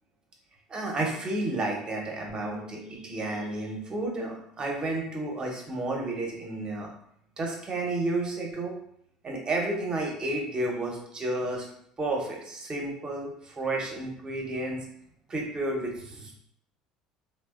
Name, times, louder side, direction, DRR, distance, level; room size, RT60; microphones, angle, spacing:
voice 1, 0.7-6.9 7.4-8.8 9.2-11.7 12.0-14.9 15.3-16.3, right 2 dB, 30° right, 0 dB, 0.7 m, -31 dB
Bass guitar, 2.3-8.5, right 1 dB, 45° left, 0.6 m, -53 dB
2.7 x 2.0 x 2.3 m, 0.70 s
hypercardioid pair, 70°, 3 cm